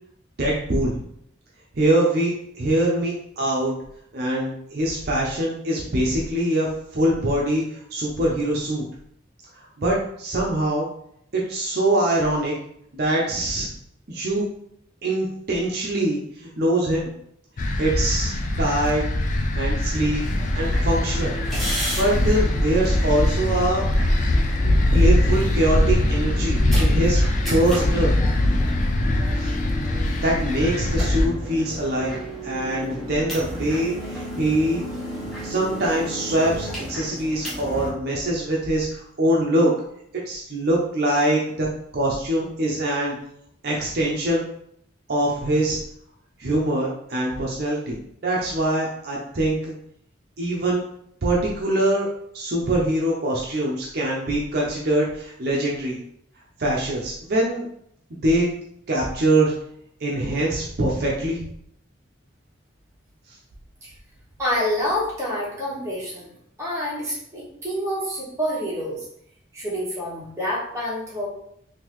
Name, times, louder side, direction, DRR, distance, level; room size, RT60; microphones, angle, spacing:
voice 1, 0.4-0.9 1.7-3.7 4.1-8.8 9.8-10.9 11.3-12.5 12.9-13.7 14.1-14.4 15.0-17.1 17.8-19.0 19.6-20.2 20.5-21.3 22.0-23.8 24.9-27.2 27.5-28.1 29.4-29.5 30.2-32.1 32.4-34.8 35.4-39.7 40.3-41.7 41.9-43.1 43.6-44.4 45.1-45.8 46.4-49.7 50.4-50.8 51.2-52.1 52.3-56.0 56.6-57.6 58.2-58.5 58.9-59.5 60.0-61.4, right 1 dB, 50° right, -3 dB, 0.5 m, -23 dB
sound 1, 17.6-31.3, left 1 dB, 40° left, 0.3 m, -22 dB
sound 2, 19.9-37.9, equal, ahead, 0.8 m, -33 dB
voice 2, 64.4-66.3 66.6-69.1 69.5-71.3, equal, 15° right, -7 dB, 1.1 m, -27 dB
3.6 x 2.6 x 3.0 m, 0.71 s
head